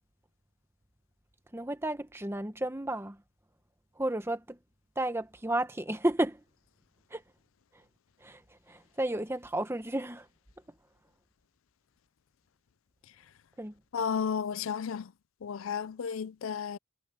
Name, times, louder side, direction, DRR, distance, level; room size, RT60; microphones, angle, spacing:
voice 1, 1.5-3.2 4.0-4.6 5.0-6.4 7.1-7.2 8.2-8.4 8.7-10.2 13.6-13.7, right 1 dB, 10° right, 1.0 m, -32 dB
voice 2, 13.9-15.1 15.4-16.8, left 6 dB, 65° left, 0.4 m, -33 dB
head